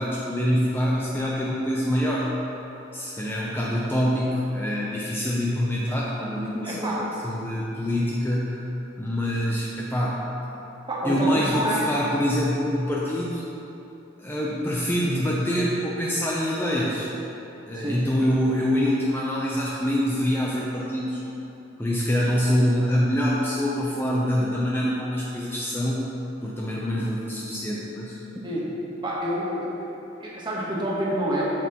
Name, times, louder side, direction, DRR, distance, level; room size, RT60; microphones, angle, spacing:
voice 1, 0.0-2.3 2.9-8.7 9.0-10.3 11.0-13.4 14.2-17.1 17.7-21.2 21.8-26.1 26.4-28.4, equal, 10° left, -5 dB, 0.5 m, -25 dB
voice 2, 6.6-7.0 10.9-11.9 17.7-18.0 28.4-28.7 29.0-29.9 30.2-31.7, equal, 25° right, -5 dB, 1.2 m, -27 dB
7.3 x 7.2 x 2.9 m, 3.0 s
head